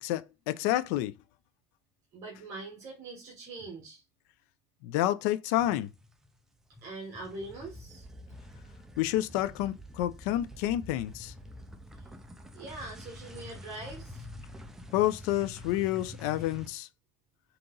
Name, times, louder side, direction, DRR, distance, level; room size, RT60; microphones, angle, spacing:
voice 1, 0.0-1.2 4.8-5.9 9.0-11.3 14.9-16.9, left 14 dB, 80° left, 0.4 m, -29 dB
voice 2, 2.1-4.0 6.8-8.0 11.9-12.1 12.5-14.3, right 2 dB, 35° right, 1.1 m, -43 dB
sound 1, 5.6-6.4 6.6-16.7, left 1 dB, 5° right, 0.4 m, -47 dB
3.8 x 2.9 x 3.7 m
cardioid pair, 175°, 9 cm